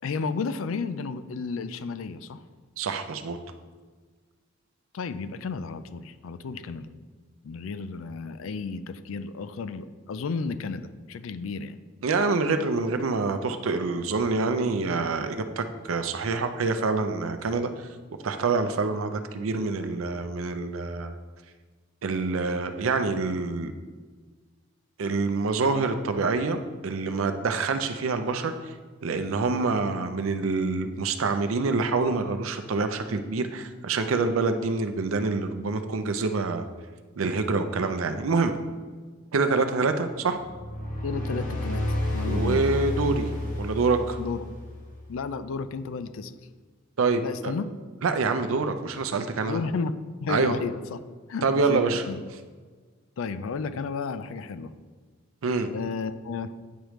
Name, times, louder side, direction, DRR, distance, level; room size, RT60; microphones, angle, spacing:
voice 1, 0.0-2.4 4.9-6.9 7.4-11.8 41.0-41.8 42.1-42.6 44.2-44.5 45.1-46.3 47.2-47.7 49.4-51.0 51.3-52.2 53.2-54.7 55.7-56.5, left 4 dB, 80° left, 13 dB, 0.4 m, -32 dB
voice 2, 2.8-3.4 12.0-17.7 18.2-21.2 22.0-23.7 25.0-28.7 29.0-36.6 37.2-38.5 39.3-40.4 42.3-43.3 43.6-44.2 47.0-47.5 48.0-49.6 50.3-50.6 51.4-52.0 55.4-55.7, right 4 dB, 90° right, 8 dB, 0.5 m, -26 dB
sound 1, 40.4-45.0, left 1 dB, 40° left, 1.4 m, -30 dB
9.1 x 3.1 x 4.9 m, 1.4 s
head